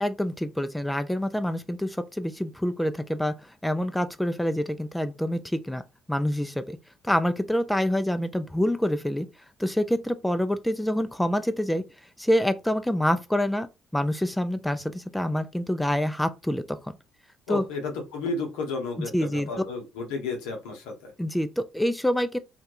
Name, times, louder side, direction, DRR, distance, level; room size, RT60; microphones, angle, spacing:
voice 1, 0.0-3.3 3.6-5.8 6.1-6.8 7.0-9.3 9.6-11.8 12.2-13.7 13.9-16.8 17.5-17.6 19.1-19.5 21.2-22.4, equal, 5° left, 0.3 m, -26 dB
voice 2, 17.5-21.1, left 3 dB, 75° left, 0.7 m, -32 dB
2.3 x 2.1 x 2.9 m
hypercardioid pair, 50°, 0 cm